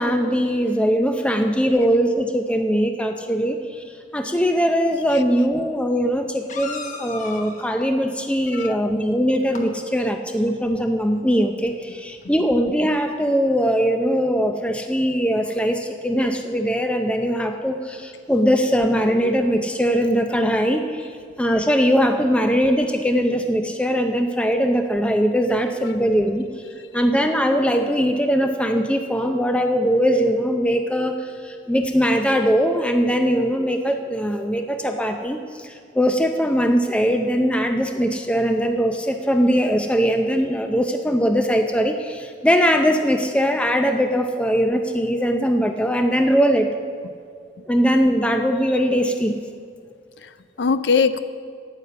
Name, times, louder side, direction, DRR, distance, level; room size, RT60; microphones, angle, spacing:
voice 1, 0.0-3.8 4.1-21.1 21.4-26.5 26.9-46.7 47.7-49.4, equal, 5° left, 5 dB, 0.5 m, -21 dB
sound 1, 5.3-5.4 6.5-7.9 9.3-9.7 11.8-11.9 12.2-12.3, left 4 dB, 45° left, 1.1 m, -35 dB
voice 2, 50.2-51.2, left 5 dB, 70° left, 12 dB, 0.5 m, -22 dB
9.7 x 9.3 x 6.9 m, 2.1 s
head